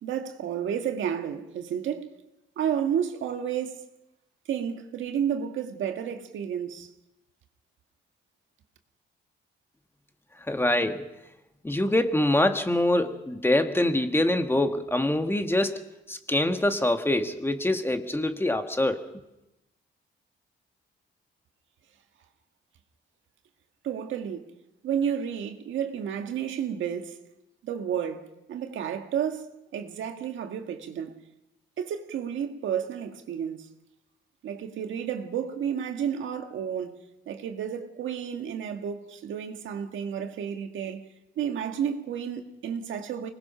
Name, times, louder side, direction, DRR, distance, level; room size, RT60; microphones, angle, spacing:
voice 1, 0.0-2.1 2.6-3.9 4.5-6.9 23.8-24.5 24.8-27.2 27.6-31.2 31.8-33.7 34.4-37.0 37.3-41.1 41.4-43.3, right 8 dB, 75° right, 1.8 m, -31 dB
voice 2, 10.5-11.1 11.6-15.8 16.1-19.1, left 1 dB, 10° left, 1.6 m, -24 dB
25.5 x 20.0 x 5.8 m
cardioid pair, 90°, 20 cm